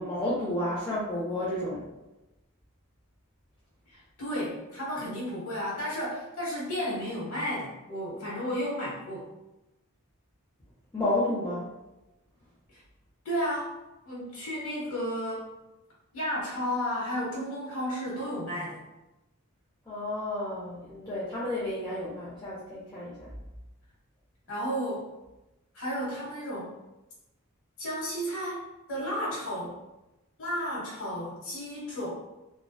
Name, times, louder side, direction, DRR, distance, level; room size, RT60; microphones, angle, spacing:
voice 1, 0.0-1.8 10.9-11.7 19.9-23.3, left 1 dB, 15° left, -9 dB, 0.4 m, -31 dB
voice 2, 3.9-9.3 12.7-12.8 13.2-13.8 14.0-15.5 16.1-18.8 24.5-25.1 25.7-26.7 27.8-28.6 28.9-29.8 30.4-32.1, equal, 65° left, -6 dB, 0.9 m, -33 dB
2.6 x 2.1 x 2.2 m, 0.98 s
head